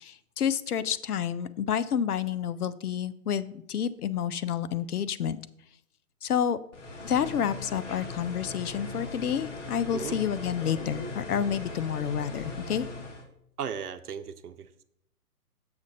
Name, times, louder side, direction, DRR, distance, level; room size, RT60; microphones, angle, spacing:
voice 1, 0.0-5.4 6.2-6.6 7.0-12.9, left 8 dB, 75° left, 15 dB, 0.7 m, -29 dB
sound 1, 6.7-13.2, left 3 dB, 50° left, 1.5 m, -39 dB
voice 2, 13.6-14.8, right 7 dB, 80° right, 11 dB, 0.8 m, -36 dB
6.9 x 6.3 x 4.1 m, 0.75 s
hypercardioid pair, 135°, 46 cm